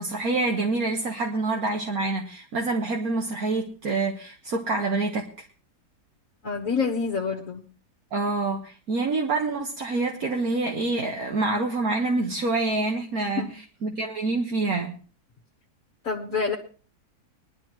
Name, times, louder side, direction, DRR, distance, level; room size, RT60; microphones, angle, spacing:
voice 1, 0.0-5.5 8.1-13.4 13.8-15.0, right 3 dB, 65° right, 1.8 m, -26 dB
voice 2, 6.4-7.6 13.4-13.5 16.0-16.6, left 5 dB, 60° left, 1.7 m, -27 dB
21.0 x 12.0 x 3.0 m
omnidirectional pair, 1.7 m